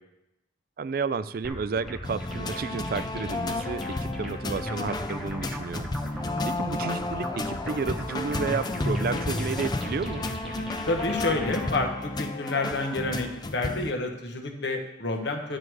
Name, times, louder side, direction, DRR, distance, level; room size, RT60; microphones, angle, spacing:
voice 1, 0.8-10.3, right 5 dB, 50° right, 15 dB, 0.3 m, -32 dB
sound 1, 1.4-11.8, equal, ahead, 1.0 m, -38 dB
sound 2, 2.0-13.9, left 2 dB, 20° left, 0.4 m, -32 dB
voice 2, 10.8-15.6, left 2 dB, 65° left, 3 dB, 1.2 m, -29 dB
11.5 x 6.3 x 4.7 m, 0.94 s
head